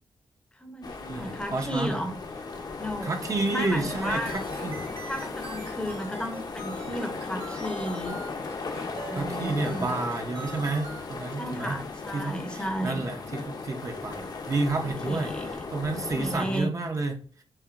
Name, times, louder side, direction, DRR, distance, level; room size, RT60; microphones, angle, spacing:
voice 1, 0.5-2.2 2.8-3.2 3.5-4.4 5.1-8.2 9.1-9.9 11.4-13.1 15.1-15.5 16.2-16.7, equal, 10° left, 5 dB, 0.7 m, -34 dB
sound 1, 0.8-16.6, left 4 dB, 50° left, 0.7 m, -36 dB
voice 2, 1.1-2.0 3.0-4.8 9.1-11.8 12.1-15.3 15.7-17.1, right 3 dB, 40° right, 4 dB, 0.6 m, -30 dB
sound 2, 3.8-11.1, right 3 dB, 75° right, 1.2 m, -44 dB
5.7 x 2.7 x 2.5 m, 0.43 s
wide cardioid pair, 125°, 9 cm